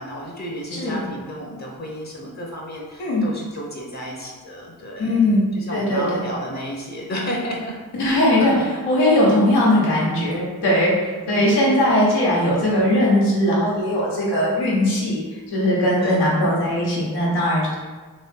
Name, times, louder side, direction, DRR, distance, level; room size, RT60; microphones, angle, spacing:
voice 1, 0.0-5.3 5.6-8.7 11.3-11.7 16.0-16.3, equal, 45° left, -1 dB, 1.0 m, -32 dB
voice 2, 0.7-1.0 3.0-3.3 5.0-5.4 5.7-6.3 8.0-17.7, left 1 dB, 90° left, -6 dB, 1.4 m, -19 dB
3.3 x 3.0 x 4.5 m, 1.4 s
cardioid pair, 45°, 39 cm